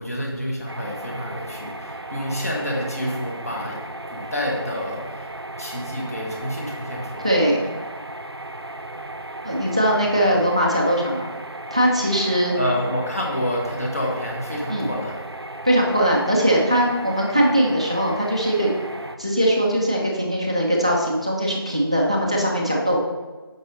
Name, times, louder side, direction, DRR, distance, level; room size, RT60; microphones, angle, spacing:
voice 1, 0.0-7.3 12.5-15.2, equal, 40° left, -1 dB, 1.4 m, -28 dB
sound 1, 0.7-19.2, right 2 dB, 85° right, 0.7 m, -36 dB
voice 2, 7.2-7.6 9.4-11.3 11.7-12.5 14.7-14.9 15.6-18.7 19.2-23.0, equal, 15° right, -1 dB, 0.5 m, -20 dB
7.6 x 5.4 x 4.1 m, 1.3 s
figure-of-eight pair, 170°, 13 cm